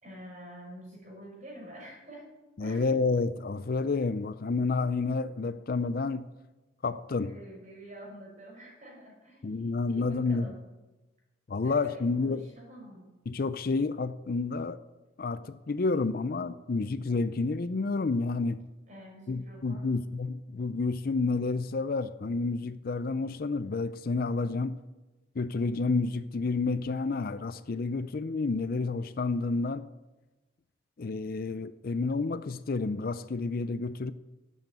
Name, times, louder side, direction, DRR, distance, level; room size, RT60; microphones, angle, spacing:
voice 1, 0.0-2.3 2.6-2.9 7.2-10.6 11.6-13.1 18.9-19.9, equal, 35° right, -1 dB, 5.5 m, -47 dB
voice 2, 2.6-6.3 6.8-7.3 9.4-10.5 11.5-12.4 13.3-14.8 15.2-18.6 19.3-24.8 25.4-29.9 31.0-34.1, left 3 dB, 45° left, 13 dB, 0.4 m, -30 dB
12.0 x 8.3 x 8.9 m, 1.1 s
head